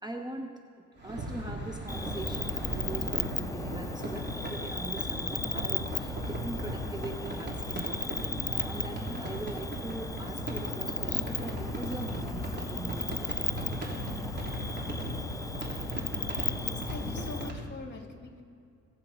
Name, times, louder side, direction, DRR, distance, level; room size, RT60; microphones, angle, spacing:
voice 1, 0.0-13.4, right 2 dB, 15° right, 5 dB, 0.8 m, -42 dB
sound 1, 1.0-17.6, right 1 dB, 35° right, 3.5 m, -37 dB
Cricket, 1.9-17.5, left 3 dB, 10° left, 0.5 m, -37 dB
voice 2, 16.6-18.4, left 3 dB, 35° left, 2 dB, 2.7 m, -42 dB
22.5 x 8.1 x 4.4 m, 2.4 s
cardioid pair, 90°, 30 cm